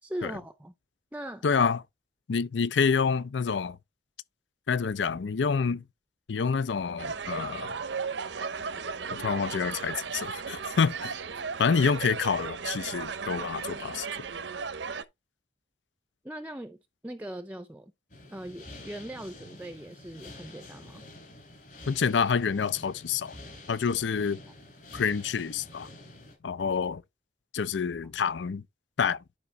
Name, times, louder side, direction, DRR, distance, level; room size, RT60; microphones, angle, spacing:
voice 1, 0.0-0.7 1.1-1.4 16.2-16.8 17.0-17.9 18.3-21.0, right 1 dB, 10° right, 0.5 m, -40 dB
voice 2, 1.4-1.8 2.3-3.8 4.7-5.8 6.3-7.8 9.1-11.2 11.6-14.1 21.9-23.3 23.7-24.4 24.9-25.9 26.4-27.0 27.5-28.6 29.0-29.2, left 6 dB, 80° left, 0.5 m, -27 dB
sound 1, 7.0-15.0, right 5 dB, 80° right, 0.8 m, -35 dB
sound 2, 18.1-26.4, left 2 dB, 45° left, 3.3 m, -48 dB
11.0 x 5.1 x 3.3 m
head